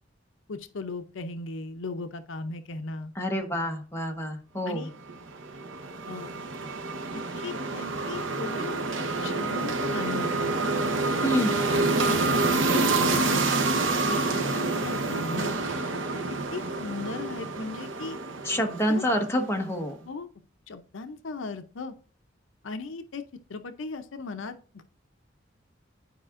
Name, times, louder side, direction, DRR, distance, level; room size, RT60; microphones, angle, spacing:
voice 1, 0.5-3.1 4.7-4.9 6.1-6.3 7.4-8.7 9.2-10.5 11.2-11.5 12.1-13.5 14.0-15.5 16.5-18.2 18.9-19.0 20.1-20.3 20.7-21.9 22.6-23.2 23.5-24.8, left 3 dB, 80° left, 9 dB, 0.6 m, -37 dB
voice 2, 3.2-4.9 11.2-11.5 18.4-19.9, equal, 15° left, 2 dB, 1.1 m, -27 dB
sound 1, 5.1-19.4, right 3 dB, 80° right, 0.9 m, -28 dB
11.0 x 4.9 x 2.5 m, 0.39 s
head